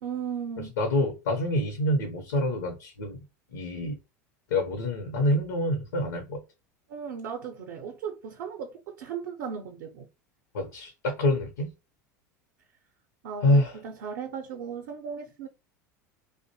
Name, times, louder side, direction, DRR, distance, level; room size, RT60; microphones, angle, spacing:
voice 1, 0.0-0.7 6.9-10.1 13.2-15.5, right 7 dB, 65° right, 0.5 m, -36 dB
voice 2, 0.8-3.2 3.5-4.0 4.5-6.4 10.5-11.7 13.4-13.8, left 1 dB, 75° left, 0.6 m, -26 dB
2.5 x 2.1 x 2.7 m
hypercardioid pair, 80°, 9 cm